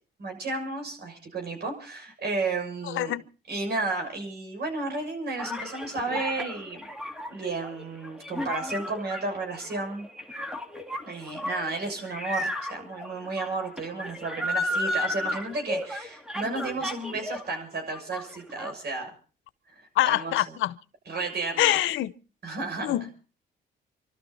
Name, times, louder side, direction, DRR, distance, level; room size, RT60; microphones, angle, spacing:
voice 1, 0.2-3.1 3.5-6.9 7.3-10.1 11.1-19.1 19.7-20.3 21.1-21.8 22.4-22.9, right 3 dB, 55° right, 6.8 m, -32 dB
voice 2, 2.8-3.2 20.0-20.7 21.6-22.1 22.8-23.1, left 14 dB, 85° left, 0.8 m, -25 dB
sound 1, 5.4-17.6 17.9-18.7, left 1 dB, 5° right, 2.0 m, -34 dB
27.0 x 13.0 x 4.1 m
cardioid pair, 90°, 20 cm